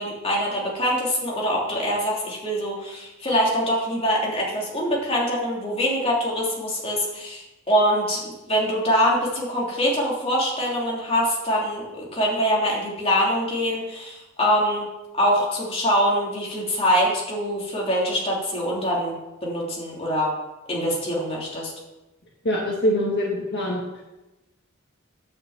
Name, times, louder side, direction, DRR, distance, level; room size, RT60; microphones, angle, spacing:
voice 1, 0.0-14.9 15.1-20.3 20.7-21.7, equal, 30° left, -4 dB, 3.1 m, -24 dB
voice 2, 22.4-24.0, equal, 55° left, -3 dB, 1.9 m, -24 dB
9.6 x 6.1 x 8.0 m, 1.0 s
head